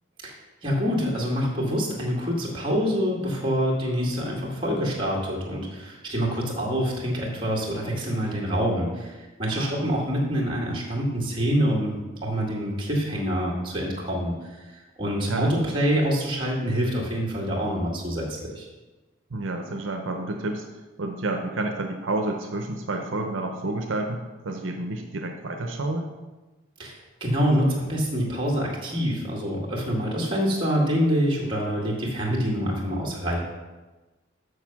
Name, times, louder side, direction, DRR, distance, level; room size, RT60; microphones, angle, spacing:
voice 1, 0.6-12.0 12.2-14.6 15.0-18.7 26.8-33.4, equal, 25° right, -2 dB, 1.8 m, -26 dB
voice 2, 9.5-9.9 15.3-15.6 15.9-16.0 19.3-24.2 24.4-26.1, right 2 dB, 70° right, 3 dB, 0.7 m, -30 dB
6.6 x 6.5 x 5.9 m, 1.2 s
head